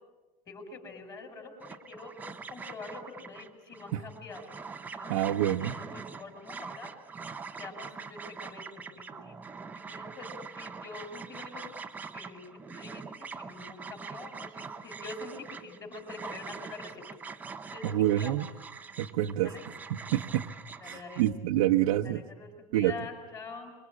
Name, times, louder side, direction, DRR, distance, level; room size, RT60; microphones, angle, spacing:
voice 1, 0.5-1.5 1.9-2.1 2.5-4.4 4.9-5.3 5.6-6.9 7.6-9.4 9.9-10.3 10.6-11.6 12.1-17.0 17.7-18.5 19.4-19.6 20.8-21.3 22.0-23.7, left 3 dB, 20° left, 4 dB, 5.1 m, -45 dB
sound 1, 1.6-21.3, right 5 dB, 10° right, 0.8 m, -44 dB
voice 2, 5.1-5.8 17.8-18.5 19.0-19.5 19.9-20.4 20.8-22.2 22.7-23.0, right 13 dB, 80° right, 2 dB, 1.1 m, -27 dB
25.5 x 23.5 x 8.5 m, 1.2 s
supercardioid pair, 165°, 18 cm